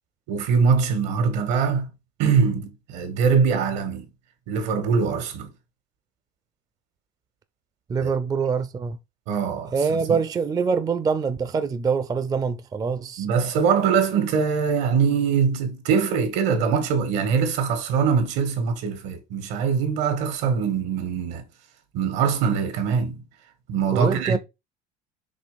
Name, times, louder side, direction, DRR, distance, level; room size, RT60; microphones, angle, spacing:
voice 1, 0.3-1.9 2.2-4.1 4.5-5.5 8.0-8.1 9.3-10.2 13.2-21.4 21.9-23.2 23.7-24.4, right 6 dB, 75° right, 2.0 m, -23 dB
voice 2, 7.9-9.0 9.7-13.3 23.9-24.4, right 5 dB, 20° right, 0.4 m, -24 dB
5.3 x 3.4 x 5.2 m
cardioid pair, 120°, 18 cm